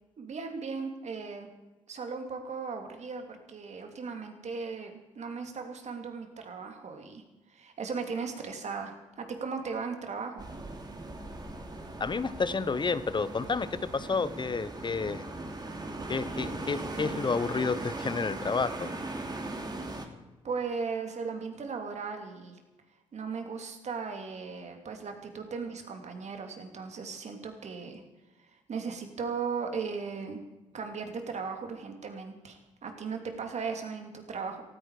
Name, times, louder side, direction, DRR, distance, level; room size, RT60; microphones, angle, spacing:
voice 1, 0.2-1.5 1.9-7.2 7.5-10.4 20.4-22.6 23.1-28.0 28.7-30.4 30.7-34.6, right 5 dB, 50° right, 5 dB, 2.9 m, -37 dB
sound 1, 10.4-20.1, right 2 dB, 30° right, 2.8 m, -39 dB
voice 2, 12.0-15.2 16.1-18.9, left 4 dB, 30° left, 15 dB, 1.0 m, -30 dB
18.0 x 14.0 x 5.0 m, 1.1 s
hypercardioid pair, 50°, 14 cm